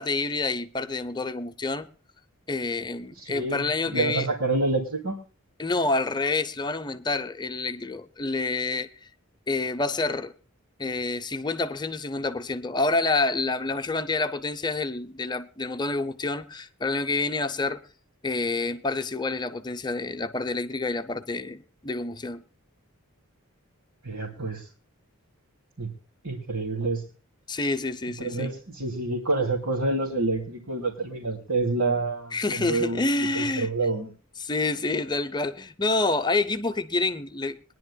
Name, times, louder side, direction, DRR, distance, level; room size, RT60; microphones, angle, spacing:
voice 1, 0.0-1.9 2.5-4.3 5.6-9.1 9.5-10.3 10.8-17.8 18.2-22.4 27.5-28.5 32.3-33.7 34.4-37.6, left 3 dB, 20° left, 0.7 m, -28 dB
voice 2, 3.2-5.2 24.0-24.7 25.8-25.9 26.2-27.0 28.2-33.0 33.3-34.1, right 3 dB, 65° right, 2.6 m, -28 dB
22.5 x 10.5 x 2.3 m
head